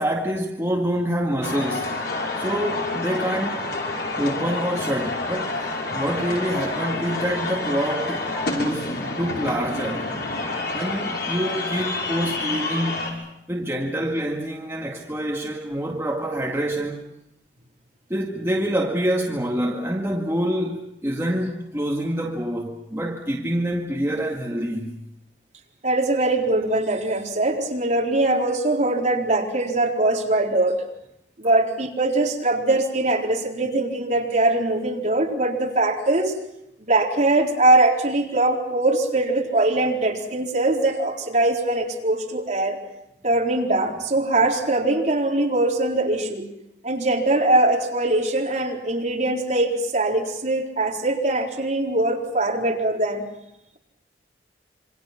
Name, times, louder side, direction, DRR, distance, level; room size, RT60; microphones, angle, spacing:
voice 1, 0.0-1.9 2.3-3.7 4.2-5.6 5.9-8.9 9.2-10.1 10.7-13.2 13.5-17.0 18.1-25.0, equal, 15° right, 2.1 m, -26 dB
sound 1, 1.4-13.1, left 2 dB, 65° left, 6.1 m, -28 dB
voice 2, 25.8-30.8 31.4-36.3 36.8-42.8 43.2-46.5 46.8-53.2, right 2 dB, 40° right, 4.2 m, -22 dB
27.5 x 25.0 x 6.0 m
head